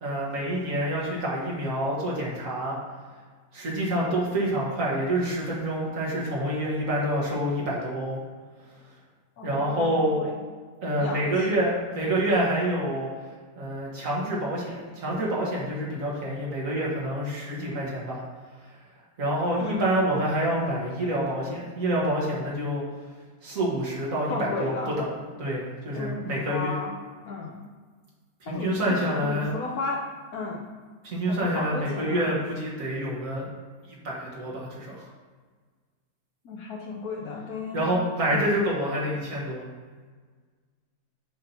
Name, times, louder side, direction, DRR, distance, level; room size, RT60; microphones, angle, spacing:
voice 1, 0.0-2.8 3.5-8.2 9.4-10.2 10.8-13.1 13.6-18.2 19.2-22.8 23.4-25.1 25.4-26.8 28.4-29.5 31.0-33.4 34.0-35.1 37.7-39.6, right 1 dB, 55° right, -4 dB, 1.7 m, -27 dB
voice 2, 9.4-10.3 11.0-11.5 19.6-19.9 24.3-24.9 25.9-27.0 27.3-27.6 28.5-30.0 30.3-30.7 31.3-32.4 36.4-38.0 38.3-38.5, left 3 dB, 70° left, -1 dB, 1.1 m, -34 dB
6.8 x 2.8 x 5.5 m, 1.5 s
omnidirectional pair, 1.8 m